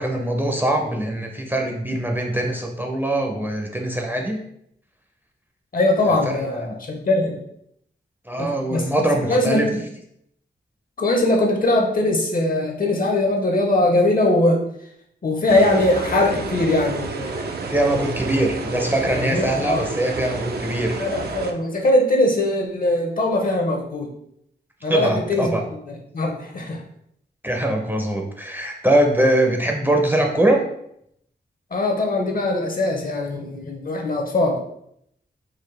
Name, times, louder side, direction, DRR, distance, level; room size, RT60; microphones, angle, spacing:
voice 1, 0.0-4.4 6.3-6.7 8.3-9.7 17.7-21.1 24.9-25.6 27.4-30.6, right 1 dB, 10° right, 1 dB, 0.5 m, -22 dB
voice 2, 5.7-7.4 8.4-9.8 11.0-14.6 15.2-17.5 19.1-19.9 21.0-24.1 24.8-25.6 25.9-26.8 31.7-34.6, left 2 dB, 50° left, 2 dB, 0.8 m, -21 dB
sound 1, 15.5-21.5, right 3 dB, 60° right, 0.5 m, -30 dB
4.0 x 2.4 x 3.2 m, 0.73 s
wide cardioid pair, 105°, 18 cm